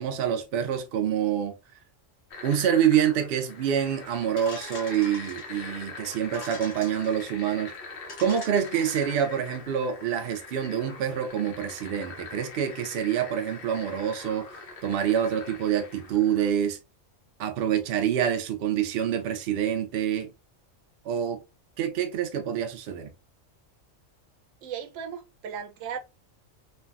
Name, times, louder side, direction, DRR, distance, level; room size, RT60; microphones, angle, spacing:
voice 1, 0.0-1.5 2.4-7.7 8.2-16.8 17.4-20.3 21.0-21.4 21.8-23.1, right 9 dB, 60° right, 0.7 m, -26 dB
sound 1, 2.3-16.5, left 4 dB, 50° left, 0.9 m, -43 dB
sound 2, 4.4-5.7 6.2-7.3 7.7-7.8 8.1-9.3, left 3 dB, 90° left, 1.4 m, -43 dB
voice 2, 24.6-26.0, right 7 dB, 90° right, 1.0 m, -36 dB
3.2 x 2.2 x 2.3 m
omnidirectional pair, 1.3 m